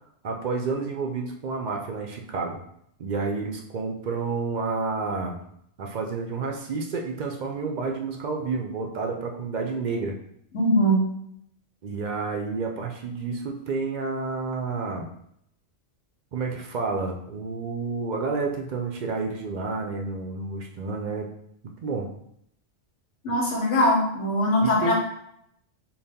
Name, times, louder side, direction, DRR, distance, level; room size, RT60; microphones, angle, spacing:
voice 1, 0.2-2.6 3.0-5.4 5.8-10.1 11.8-15.1 16.3-21.3 21.6-22.1 24.6-24.9, right 4 dB, 55° right, 2 dB, 0.5 m, -30 dB
voice 2, 10.5-11.0 23.2-24.9, equal, 85° left, -3 dB, 1.3 m, -21 dB
4.1 x 2.3 x 3.4 m, 0.72 s
omnidirectional pair, 1.2 m